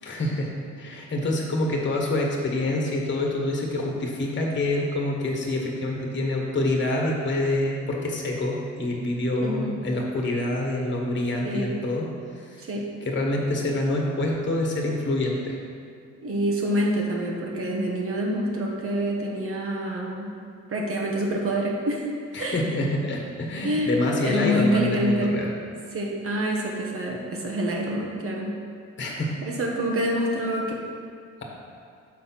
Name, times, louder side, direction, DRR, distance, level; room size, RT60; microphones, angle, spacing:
voice 1, 0.0-12.1 12.3-12.7 13.0-15.6 22.3-25.5 29.0-29.4, left 1 dB, 40° left, -1 dB, 1.4 m, -26 dB
voice 2, 9.4-9.7 11.4-11.7 12.6-12.8 16.2-20.3 20.7-22.1 22.4-22.6 23.6-23.9 24.2-25.3 25.9-28.5 29.4-30.7, equal, 50° right, -1 dB, 1.2 m, -26 dB
6.5 x 4.3 x 5.7 m, 2.3 s
cardioid pair, 90°, 30 cm